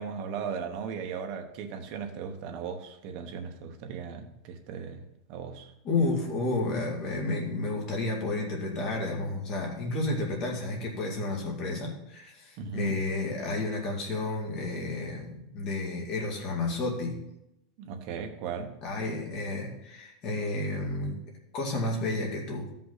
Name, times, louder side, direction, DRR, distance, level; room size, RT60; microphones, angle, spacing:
voice 1, 0.0-5.0 5.3-5.7 12.6-13.0 17.8-18.8, right 6 dB, 40° right, 5 dB, 1.0 m, -37 dB
voice 2, 5.8-17.2 18.8-21.2 21.5-22.7, left 2 dB, 30° left, 0 dB, 2.0 m, -31 dB
13.5 x 5.5 x 4.0 m, 0.85 s
supercardioid pair, 175°, 2 cm